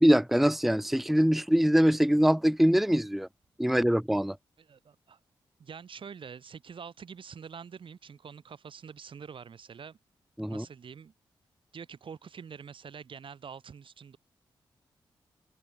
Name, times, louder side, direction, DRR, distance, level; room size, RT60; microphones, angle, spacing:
voice 1, 0.0-3.3 3.6-4.4 10.4-10.6, equal, ahead, 0.7 m, -23 dB
voice 2, 4.6-5.2 5.6-10.0 10.5-11.1 11.7-14.2, right 6 dB, 65° right, 3.0 m, -46 dB
cardioid pair, 65°, 9 cm